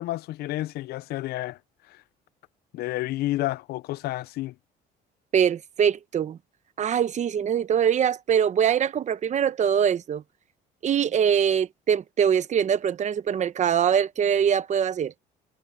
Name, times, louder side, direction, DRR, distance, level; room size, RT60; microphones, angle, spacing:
voice 1, 0.0-1.6 2.7-4.5, left 16 dB, 70° left, 0.4 m, -30 dB
voice 2, 5.3-6.4 6.8-10.2 10.8-15.1, right 8 dB, 45° right, 1.0 m, -23 dB
cardioid pair, 110°, 17 cm